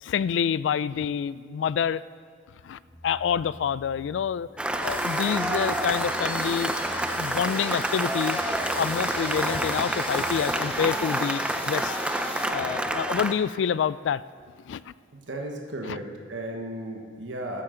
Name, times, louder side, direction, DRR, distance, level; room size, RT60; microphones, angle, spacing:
voice 1, 0.0-2.0 2.6-4.5 4.8-6.7 7.2-8.4 8.8-12.0 12.5-14.2 14.7-14.9 15.9-16.0, left 7 dB, 75° left, 18 dB, 0.3 m, -27 dB
Keyboard (musical), 2.8-11.2, equal, 55° right, 3.0 m, -49 dB
Cheering / Applause, 4.6-13.3, right 1 dB, 5° right, 0.5 m, -28 dB
sound 1, 4.8-12.5, left 3 dB, 30° left, 1.3 m, -39 dB
voice 2, 15.1-17.6, right 1 dB, 80° right, 2 dB, 1.1 m, -35 dB
13.5 x 9.0 x 3.8 m, 2.3 s
head